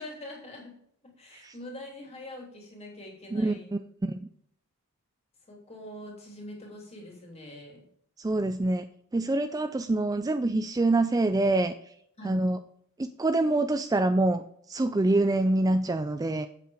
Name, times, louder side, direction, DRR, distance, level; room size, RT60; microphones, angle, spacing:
voice 1, 0.0-3.7 5.5-7.8 12.2-12.4, left 1 dB, 30° left, 0 dB, 3.0 m, -44 dB
voice 2, 3.3-3.8 8.2-8.9 9.1-11.7 12.2-12.6 13.0-16.5, right 2 dB, 15° right, 10 dB, 0.3 m, -25 dB
8.1 x 7.6 x 4.9 m, 0.69 s
head